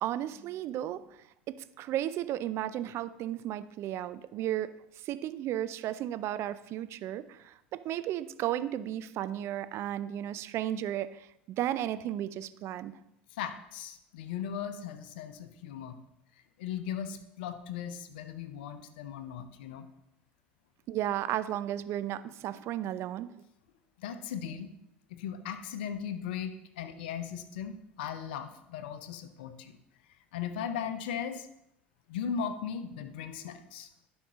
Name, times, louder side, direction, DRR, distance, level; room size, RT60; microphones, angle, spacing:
voice 1, 0.0-1.0 1.5-4.7 5.1-7.2 7.7-11.1 11.6-12.9 20.9-23.3, right 12 dB, 50° right, 14 dB, 0.5 m, -34 dB
voice 2, 13.3-15.9 16.6-19.9 24.0-24.7 25.1-29.7 30.3-31.5 32.1-33.9, left 8 dB, 70° left, 10 dB, 0.7 m, -38 dB
11.0 x 5.3 x 3.7 m, 0.78 s
hypercardioid pair, 70°, 6 cm